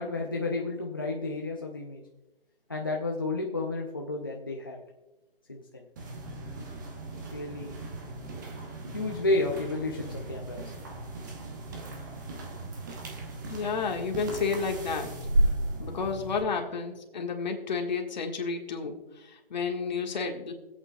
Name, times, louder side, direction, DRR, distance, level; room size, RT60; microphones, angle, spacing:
voice 1, 0.0-2.0 2.7-4.8 5.5-5.8 7.3-7.8 8.9-10.7, left 2 dB, 25° left, -1 dB, 0.4 m, -31 dB
sound 1, 6.0-16.4, right 1 dB, 20° right, 0.8 m, -34 dB
voice 2, 13.5-15.2 15.8-20.5, left 5 dB, 45° left, 3 dB, 1.6 m, -31 dB
20.5 x 8.3 x 2.3 m, 1.0 s
hypercardioid pair, 160°, 30 cm